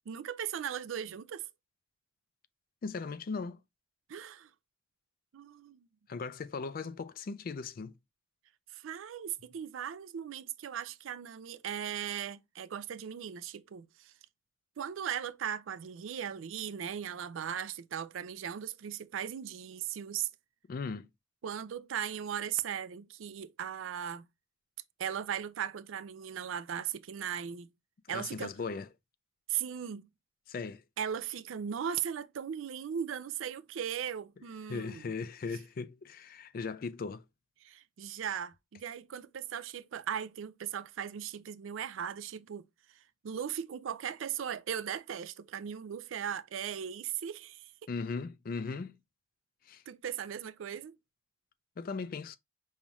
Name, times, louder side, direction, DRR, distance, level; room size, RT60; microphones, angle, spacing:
voice 1, 0.1-1.4 4.1-4.5 5.3-5.9 8.7-14.1 14.8-20.3 21.4-24.3 25.0-27.7 28.1-28.5 29.5-30.1 31.0-35.1 37.6-42.6 43.2-47.7 49.9-50.9, right 8 dB, 85° right, 0.4 m, -38 dB
voice 2, 2.8-3.6 6.1-8.0 20.7-21.1 28.1-28.9 30.5-30.8 34.7-37.2 47.9-49.0 49.7-49.8 51.8-52.4, left 4 dB, 45° left, 0.4 m, -38 dB
5.4 x 2.3 x 3.0 m
head